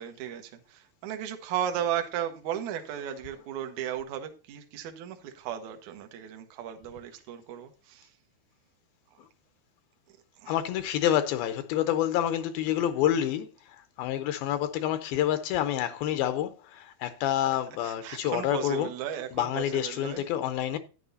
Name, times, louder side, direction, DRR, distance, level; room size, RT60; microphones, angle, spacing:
voice 1, 0.0-8.1 10.4-10.6 17.8-20.3, right 10 dB, 65° right, 2.0 m, -35 dB
voice 2, 10.5-13.5 14.0-16.5 16.8-18.9 19.4-20.8, left 11 dB, 80° left, 2.4 m, -28 dB
11.0 x 10.0 x 2.7 m
omnidirectional pair, 4.5 m